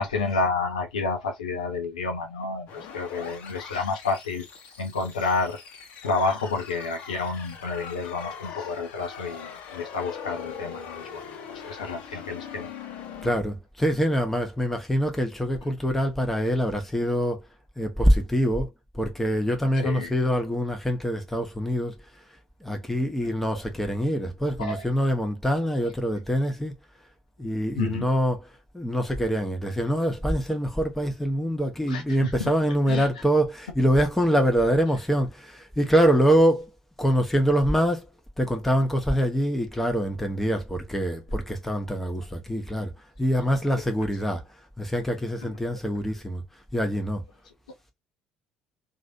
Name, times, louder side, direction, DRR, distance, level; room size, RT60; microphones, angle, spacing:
voice 1, 0.0-4.4 4.8-5.6 6.0-11.2 11.5-12.7 19.8-20.1 24.6-24.9 27.8-28.1 31.9-32.5 32.9-33.1 45.4-45.5, left 3 dB, 75° left, 0.8 m, -30 dB
sound 1, 2.7-13.3, left 7 dB, 55° left, 1.0 m, -41 dB
voice 2, 13.2-17.4 17.8-18.7 18.9-21.9 22.6-26.7 27.4-28.4 28.7-36.7 37.0-38.1 38.4-42.9 43.2-44.4 44.8-46.4 46.7-47.2, equal, 5° left, 1.2 m, -24 dB
3.1 x 2.7 x 2.6 m
figure-of-eight pair, 55°, 4 cm